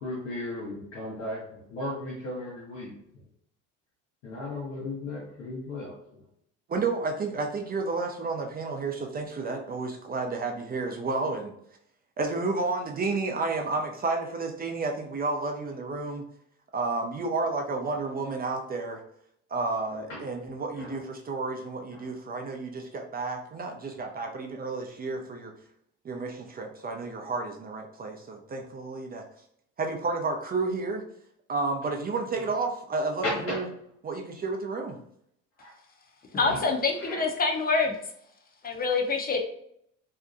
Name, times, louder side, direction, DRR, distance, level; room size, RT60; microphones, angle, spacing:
voice 1, 0.0-2.9 4.2-5.9 20.1-20.2 20.8-21.0 21.9-22.1 33.2-33.6 35.6-35.7 36.3-36.6 37.0-37.2, left 1 dB, 80° left, -5 dB, 0.9 m, -35 dB
voice 2, 6.7-11.5 12.2-16.2 16.7-19.0 19.5-25.5 26.0-29.2 29.8-31.1 31.5-33.7 34.0-35.0, right 3 dB, 25° right, 3 dB, 0.4 m, -31 dB
voice 3, 36.3-37.9 38.6-39.4, left 4 dB, 25° left, 2 dB, 0.6 m, -26 dB
2.7 x 2.2 x 2.5 m, 0.70 s
hypercardioid pair, 65°, 38 cm